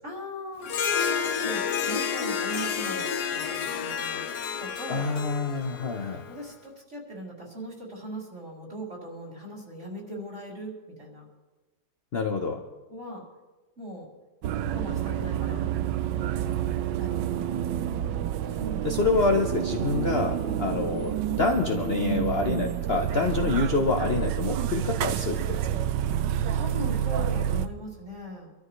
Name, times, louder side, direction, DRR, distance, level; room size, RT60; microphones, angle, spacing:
voice 1, 0.0-0.7 1.1-4.3 4.6-5.0 6.3-11.2 12.9-13.2 13.8-14.1 14.7-15.6 16.2-17.4 18.6-18.8 20.4-20.6 26.5-28.5, equal, 40° right, -3 dB, 4.2 m, -39 dB
Harp, 0.6-6.3, left 7 dB, 70° left, 1.5 m, -30 dB
voice 2, 4.9-6.2 12.1-12.6 18.8-25.8, left 3 dB, 45° left, 3 dB, 0.9 m, -27 dB
sound 1, 14.4-27.7, right 10 dB, 85° right, 1.3 m, -29 dB
26.0 x 13.0 x 3.2 m, 1.2 s
omnidirectional pair, 1.9 m